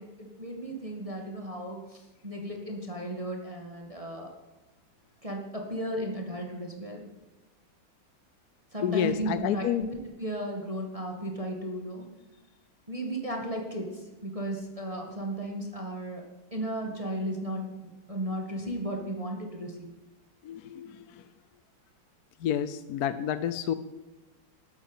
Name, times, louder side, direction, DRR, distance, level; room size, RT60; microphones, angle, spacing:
voice 1, 0.0-4.3 5.2-7.0 8.7-9.9 10.2-12.1 12.9-16.2 16.5-17.8 18.1-19.9, right 1 dB, 20° right, 1 dB, 1.9 m, -35 dB
voice 2, 8.8-9.8 20.4-21.2 22.4-23.7, left 9 dB, 65° left, 12 dB, 1.1 m, -29 dB
13.5 x 8.8 x 9.0 m, 1.1 s
omnidirectional pair, 2.0 m